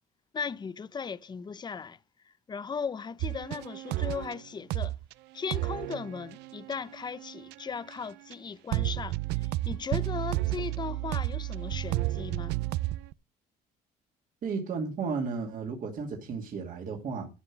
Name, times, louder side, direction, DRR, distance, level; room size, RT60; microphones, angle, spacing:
voice 1, 0.3-2.0 2.5-4.9 5.3-12.6, left 6 dB, 25° left, 0.7 m, -37 dB
sound 1, 3.2-4.4 4.7-5.1 5.5-8.0 8.3-8.4 8.7-13.1, right 17 dB, 85° right, 0.4 m, -32 dB
voice 2, 14.4-17.3, right 5 dB, 55° right, 2.4 m, -33 dB
12.5 x 5.8 x 5.9 m
cardioid pair, 110°, 17 cm